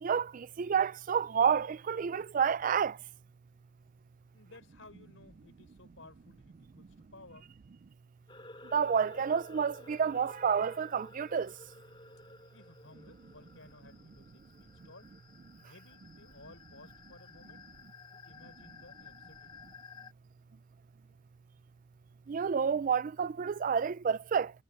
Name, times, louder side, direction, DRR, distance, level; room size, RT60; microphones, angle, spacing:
voice 1, 0.0-3.0 8.7-11.5 22.3-24.5, right 7 dB, 45° right, 0.4 m, -29 dB
voice 2, 4.3-7.5 12.5-15.2 15.6-17.7 18.1-19.6, left 2 dB, 90° left, 3.9 m, -57 dB
sound 1, 8.3-20.1, left 3 dB, 25° left, 2.3 m, -54 dB
head